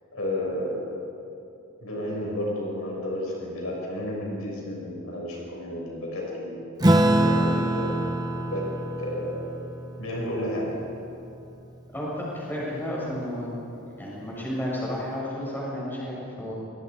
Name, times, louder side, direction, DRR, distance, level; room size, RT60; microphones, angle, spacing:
voice 1, 0.1-0.9 1.8-6.6 7.2-8.0 8.4-8.7 9.0-9.4 10.0-10.7, left 1 dB, 75° left, -2 dB, 6.2 m, -31 dB
Acoustic guitar / Strum, 6.8-11.7, right 1 dB, 15° right, 1.0 m, -25 dB
voice 2, 11.9-13.5 14.0-16.5, left 1 dB, 10° left, -6 dB, 7.0 m, -32 dB
28.0 x 19.0 x 5.0 m, 2.7 s
head